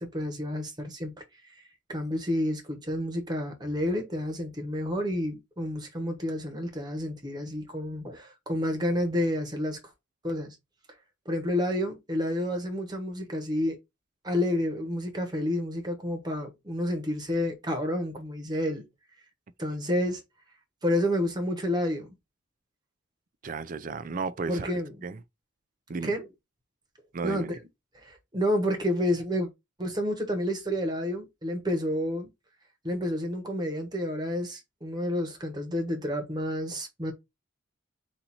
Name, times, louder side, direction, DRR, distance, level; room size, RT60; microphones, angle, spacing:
voice 1, 0.0-1.1 1.9-9.8 10.2-10.6 11.2-13.8 14.2-18.8 19.6-20.2 20.8-22.1 24.5-24.9 26.0-26.3 27.2-27.6 28.0-29.5 29.8-32.3 32.8-37.1, left 1 dB, 20° right, 1.2 m, -29 dB
voice 2, 23.4-24.7 25.0-25.2 25.9-26.1 27.1-27.5, right 4 dB, 40° right, 0.4 m, -33 dB
4.0 x 2.7 x 4.2 m
head